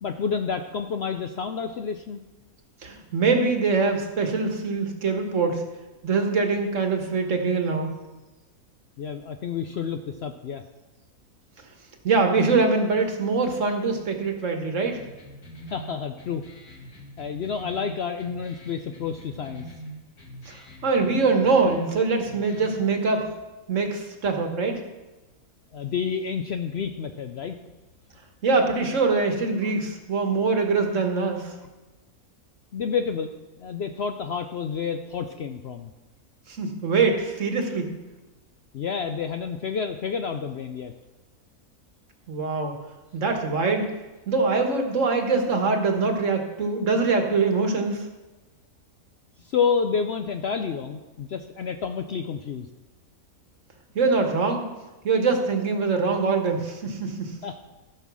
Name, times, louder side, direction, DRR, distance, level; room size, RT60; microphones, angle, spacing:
voice 1, 0.0-2.2 9.0-10.6 15.7-16.4 17.2-19.7 25.7-27.6 29.6-29.7 32.7-33.3 33.6-35.9 38.7-40.9 49.4-52.7 57.4-57.6, left 6 dB, 60° left, 7 dB, 0.7 m, -29 dB
voice 2, 2.8-5.6 6.0-7.9 12.0-15.0 20.4-23.3 23.7-24.8 28.4-31.6 36.5-38.0 42.3-42.8 43.1-43.9 44.3-48.0 53.9-54.7 55.0-57.4, right 4 dB, 60° right, 4 dB, 1.6 m, -23 dB
sound 1, 14.9-22.9, right 1 dB, 85° left, 2.5 m, -44 dB
14.5 x 5.7 x 6.1 m, 1.1 s
omnidirectional pair, 1.5 m